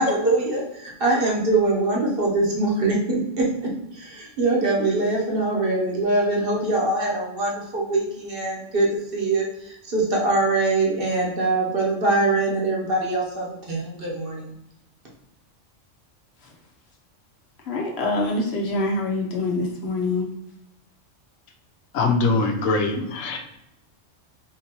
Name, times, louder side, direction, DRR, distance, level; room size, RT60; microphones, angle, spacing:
voice 1, 0.0-14.5, right 2 dB, 50° right, -3 dB, 1.0 m, -23 dB
voice 2, 17.6-20.3, left 2 dB, 60° left, -1 dB, 0.9 m, -25 dB
voice 3, 21.9-23.4, left 3 dB, 85° left, 4 dB, 1.0 m, -22 dB
3.8 x 2.8 x 2.9 m, 0.84 s
omnidirectional pair, 1.3 m